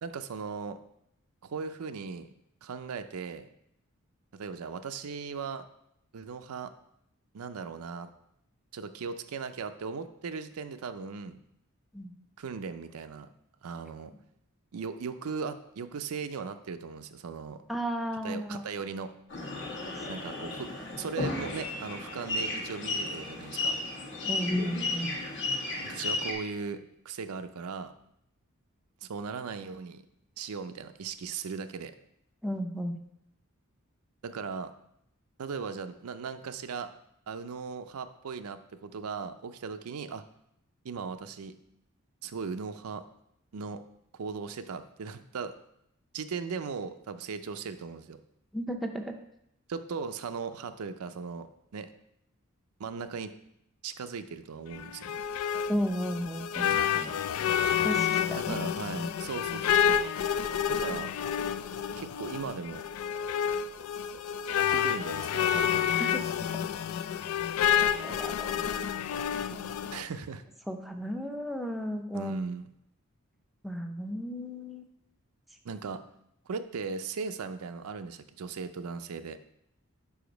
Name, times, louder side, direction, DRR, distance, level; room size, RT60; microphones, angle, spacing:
voice 1, 0.0-0.8 1.4-2.3 2.6-3.5 4.3-5.6 6.1-6.7 7.3-8.1 8.7-11.4 12.4-13.3 13.6-14.1 14.7-17.6 18.2-19.1 20.1-20.7 21.0-23.8 25.8-27.9 29.0-30.0 30.4-31.9 34.2-34.7 35.4-36.9 37.3-40.2 40.8-41.6 42.2-43.0 43.5-43.8 44.1-45.6 46.1-48.2 49.7-51.9 52.8-53.3 53.8-55.2 56.8-57.2 58.4-60.0 60.7-61.1 62.0-62.8 64.6-65.9 69.9-70.4 72.1-72.7 75.6-76.0 76.5-79.4, right 5 dB, 90° right, 9 dB, 0.5 m, -38 dB
voice 2, 17.7-18.6 19.9-20.1 24.2-25.1 32.4-33.0 48.5-49.1 55.7-57.2 57.8-58.6 66.0-66.2 68.0-69.0 69.5-69.7 70.7-72.3 73.6-74.8, equal, ahead, 3 dB, 0.5 m, -34 dB
sound 1, 19.3-26.3, left 2 dB, 55° left, 1.2 m, -33 dB
sound 2, 54.7-70.0, left 9 dB, 75° left, 0.3 m, -29 dB
5.1 x 4.9 x 5.1 m, 0.77 s
head